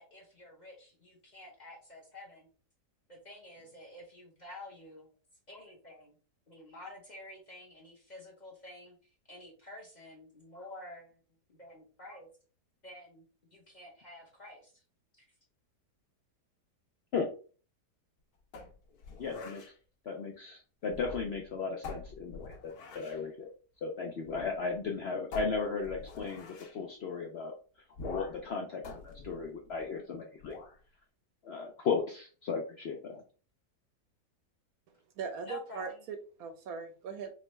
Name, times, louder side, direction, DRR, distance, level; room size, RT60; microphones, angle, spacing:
voice 1, 0.0-2.5 3.1-5.1 5.5-6.2 6.5-11.1 11.5-12.3 12.8-13.2 13.5-14.8 15.2-15.3 35.5-36.0, left 1 dB, 35° left, -1 dB, 0.7 m, -50 dB
sound 1, 18.5-19.7 20.8-21.5 21.8-23.3 24.3-24.6 24.8-24.9 25.3-26.8 28.0-28.5 28.8-30.0 30.4-30.8, left 4 dB, 70° left, 1.3 m, -45 dB
voice 2, 19.2-19.6 20.1-23.5 23.8-27.5 28.0-30.5 31.4-33.2, left 5 dB, 90° left, 2 dB, 0.5 m, -36 dB
voice 3, 35.2-37.3, right 5 dB, 70° right, 6 dB, 0.9 m, -40 dB
5.2 x 2.2 x 3.0 m, 0.38 s
omnidirectional pair, 1.8 m